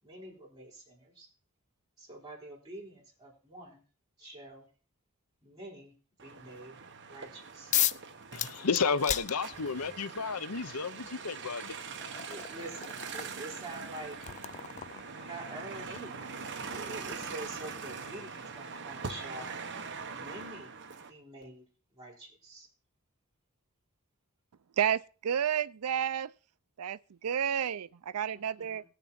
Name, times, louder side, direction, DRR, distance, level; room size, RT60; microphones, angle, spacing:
voice 1, 0.0-1.3 2.0-3.8 4.2-4.7 5.4-5.9 6.2-6.8 7.1-7.8 12.3-14.2 15.0-16.4 16.7-19.5 20.0-20.8 21.1-22.7 28.3-28.8, right 1 dB, 20° right, 4.8 m, -46 dB
sound 1, 6.2-21.1, right 5 dB, 55° right, 1.3 m, -43 dB
sound 2, 7.7-8.1 8.4-9.9 11.1-11.2 11.7-18.3, left 11 dB, 35° left, 0.5 m, -37 dB
voice 2, 8.3-11.8, left 5 dB, 85° left, 0.9 m, -32 dB
voice 3, 24.8-26.3 26.8-28.8, right 9 dB, 85° right, 0.5 m, -31 dB
19.5 x 6.7 x 4.3 m
head